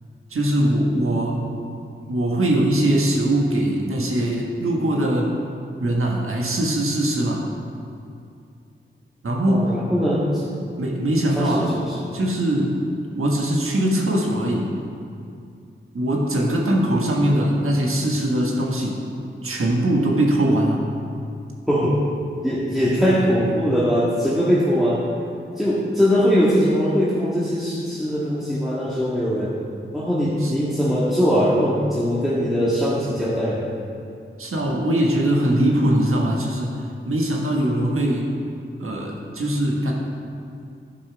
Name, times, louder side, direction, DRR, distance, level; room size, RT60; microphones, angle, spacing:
voice 1, 0.3-1.5 2.1-5.4 5.8-7.4 9.2-9.7 10.8-11.7 12.1-12.7 13.1-14.7 15.9-19.0 19.4-20.8 30.4-30.5 34.4-36.8 37.1-38.3 38.8-39.9, right 1 dB, 85° right, -1 dB, 1.4 m, -21 dB
voice 2, 9.5-10.8 11.3-12.0 21.7-22.0 22.4-25.1 25.6-29.5 29.9-33.6, equal, ahead, -8 dB, 1.7 m, -21 dB
12.5 x 5.7 x 4.6 m, 2.5 s
cardioid pair, 50°, 21 cm